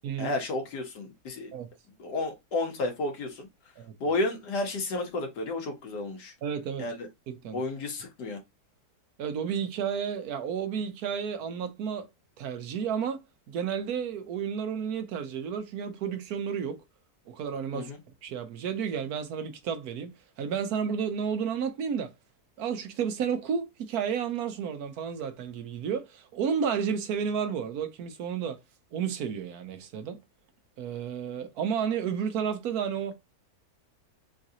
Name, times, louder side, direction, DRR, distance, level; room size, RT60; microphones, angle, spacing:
voice 1, 0.2-1.5 2.0-3.5 4.0-6.3 6.8-7.1 7.5-8.4 17.7-18.0, left 2 dB, 85° left, 1.7 m, -32 dB
voice 2, 6.4-6.9 7.3-7.6 9.2-12.1 12.4-16.8 17.3-17.9 18.2-20.1 20.4-22.1 22.6-28.6 28.9-30.2 30.8-33.1, right 7 dB, 70° right, 1.1 m, -31 dB
3.9 x 2.5 x 2.7 m
omnidirectional pair, 1.7 m